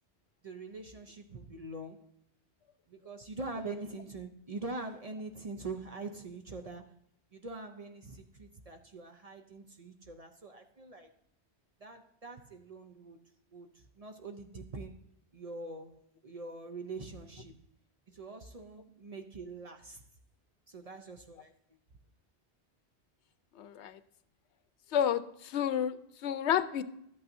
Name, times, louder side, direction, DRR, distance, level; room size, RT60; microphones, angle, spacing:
voice 1, 0.4-2.1 2.9-6.9 7.3-11.1 11.8-13.2 13.5-15.0 15.3-17.6 18.1-20.0 20.7-21.5, right 3 dB, 40° right, 5 dB, 0.6 m, -44 dB
voice 2, 23.6-24.0 24.9-26.0 26.2-26.8, left 9 dB, 80° left, 12 dB, 0.9 m, -30 dB
12.0 x 8.6 x 2.6 m, 0.75 s
omnidirectional pair, 1.1 m